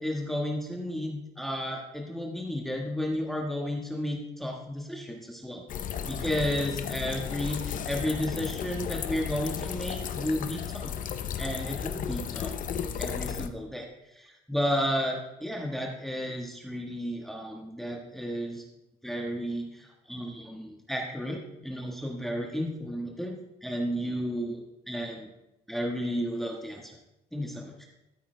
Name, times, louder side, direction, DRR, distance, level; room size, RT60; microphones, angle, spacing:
voice 1, 0.0-5.6 6.0-10.9 11.4-12.5 13.0-18.6 19.0-25.3 25.7-27.0 27.3-27.9, equal, ahead, -1 dB, 1.5 m, -33 dB
sound 1, 5.7-13.5, left 8 dB, 50° left, 0.7 m, -34 dB
14.0 x 8.5 x 3.3 m, 0.92 s
cardioid pair, 110°, 17 cm